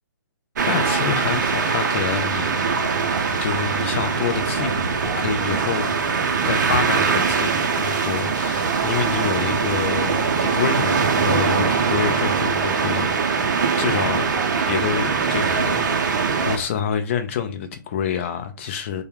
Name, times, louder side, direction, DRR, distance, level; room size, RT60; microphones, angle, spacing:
sound 1, 0.6-16.6, right 5 dB, 55° right, 0.5 m, -22 dB
voice 1, 0.7-2.9 3.4-6.1 6.4-13.1 13.8-14.3 14.6-19.0, left 8 dB, 35° left, 0.4 m, -27 dB
sound 2, 0.8-16.7, right 1 dB, 5° right, 1.2 m, -37 dB
2.1 x 2.1 x 3.1 m
hypercardioid pair, 140°, 11 cm